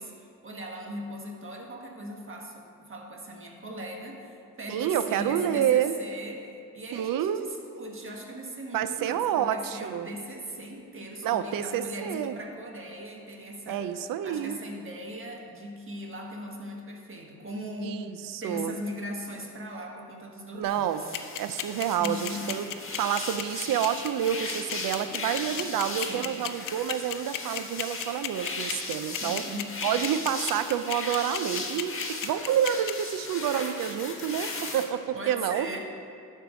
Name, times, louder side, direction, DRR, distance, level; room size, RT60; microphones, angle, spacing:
voice 1, 0.0-13.9 14.2-18.1 18.4-21.2 22.0-22.6 26.0-26.4 29.2-29.9 35.1-35.8, equal, 40° right, 1 dB, 1.6 m, -39 dB
voice 2, 4.7-5.9 6.9-7.4 8.7-10.1 11.2-12.4 13.7-14.6 17.8-18.7 20.6-21.0 21.4-22.6 23.0-29.4 29.8-35.7, right 10 dB, 90° right, 11 dB, 0.5 m, -28 dB
sound 1, 20.6-34.8, left 3 dB, 40° left, 1.6 m, -37 dB
sound 2, 21.1-32.9, left 12 dB, 75° left, 0.6 m, -33 dB
12.0 x 4.6 x 5.1 m, 2.4 s
cardioid pair, 65°, 33 cm